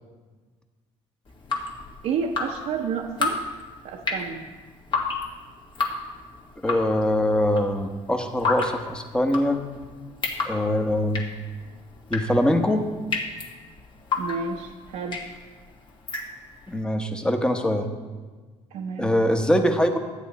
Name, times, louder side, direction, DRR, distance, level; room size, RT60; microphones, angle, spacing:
Drip, 1.3-16.7, left 4 dB, 40° left, 1.7 m, -32 dB
voice 1, 2.0-3.4 3.8-4.4 14.2-15.2 18.7-19.1, right 5 dB, 70° right, -1 dB, 0.9 m, -30 dB
voice 2, 6.6-9.6 10.4-11.2 12.1-12.9 16.7-17.9 19.0-20.0, left 1 dB, 5° left, 5 dB, 1.1 m, -23 dB
12.5 x 8.8 x 4.2 m, 1.4 s
cardioid pair, 110°, 12 cm